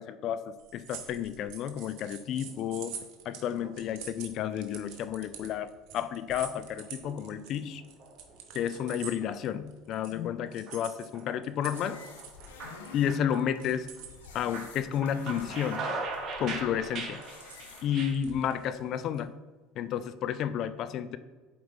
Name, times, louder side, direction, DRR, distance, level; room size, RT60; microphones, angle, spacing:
voice 1, 0.0-3.0 3.2-7.8 8.5-12.0 12.9-13.9 14.3-15.8 16.4-17.2 17.8-19.3 19.8-21.2, left 9 dB, 55° left, 13 dB, 0.5 m, -31 dB
sound 1, 0.6-10.1 10.5-14.3 15.0-15.7 16.0-16.2 17.0-19.2, right 8 dB, 65° right, 1.1 m, -46 dB
sound 2, 2.3-3.0 3.4-4.0 4.4-5.0 5.3-5.4 6.3-7.4 7.8-8.8 9.2-9.3 10.2-10.8 11.1-11.3 11.7-14.0 14.3-18.1, right 3 dB, 40° right, 2.2 m, -40 dB
sound 3, 11.7-17.8, left 5 dB, 85° left, 0.8 m, -50 dB
7.9 x 4.7 x 3.6 m, 1.3 s
hypercardioid pair, 75°, 0 cm